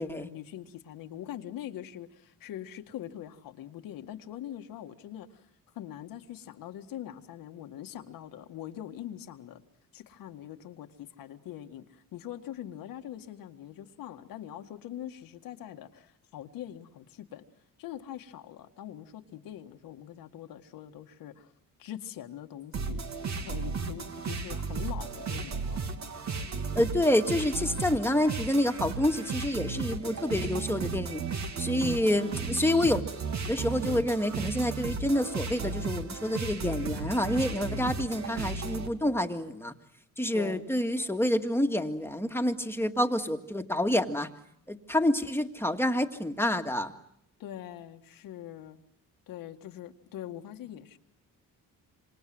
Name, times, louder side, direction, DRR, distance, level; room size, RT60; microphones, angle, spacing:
voice 1, 0.0-5.4 5.7-9.6 9.9-17.4 17.8-21.5 21.8-23.0 23.4-25.9 40.3-40.7 47.4-48.8 49.3-51.0, left 11 dB, 85° left, 6 dB, 1.9 m, -43 dB
sound 1, 22.7-38.9, right 4 dB, 55° right, 2.7 m, -34 dB
voice 2, 26.8-31.2 31.6-33.0 33.5-39.7 40.2-44.3 44.7-46.9, left 1 dB, 5° left, 5 dB, 2.0 m, -28 dB
27.0 x 26.5 x 7.8 m, 0.74 s
cardioid pair, 100°, 33 cm